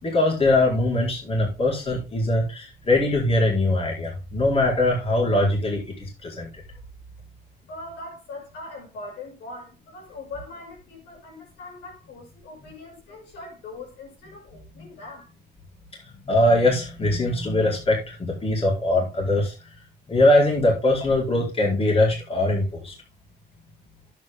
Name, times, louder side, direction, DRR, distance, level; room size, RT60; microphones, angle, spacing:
voice 1, 0.0-6.5 16.0-19.5 20.1-22.9, left 1 dB, 35° left, 4.6 m, -22 dB
voice 2, 7.7-15.3, left 2 dB, 85° left, 6.3 m, -41 dB
10.5 x 8.6 x 3.7 m
cardioid pair, 100°, 17 cm